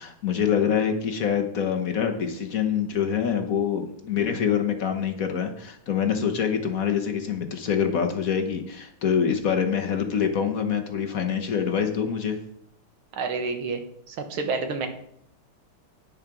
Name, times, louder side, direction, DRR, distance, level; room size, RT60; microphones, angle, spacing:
voice 1, 0.0-12.4, left 7 dB, 50° left, 5 dB, 1.2 m, -25 dB
voice 2, 13.1-14.9, right 4 dB, 85° right, 6 dB, 2.1 m, -29 dB
9.7 x 7.2 x 6.0 m, 0.70 s
omnidirectional pair, 2.2 m